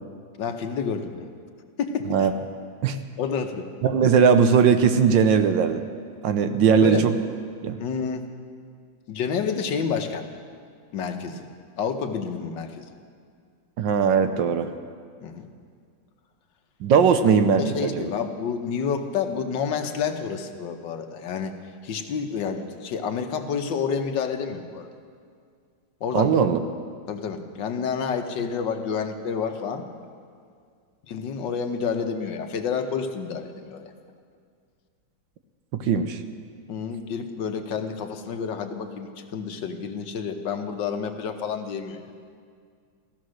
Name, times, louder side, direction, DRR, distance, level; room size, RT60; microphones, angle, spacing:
voice 1, 0.4-1.3 1.8-2.3 3.2-3.7 6.7-7.1 7.8-8.3 9.1-10.3 10.9-11.5 11.8-12.9 15.2-15.5 17.2-21.5 21.8-24.9 26.0-26.5 27.1-29.9 31.1-33.9 36.7-42.0, left 6 dB, 70° left, 6 dB, 1.6 m, -29 dB
voice 2, 3.8-5.9 6.2-7.1 7.6-7.8 13.8-14.7 16.8-18.1 26.1-26.6 35.7-36.2, right 6 dB, 75° right, 9 dB, 1.4 m, -19 dB
15.5 x 14.5 x 6.4 m, 2.2 s
omnidirectional pair, 2.1 m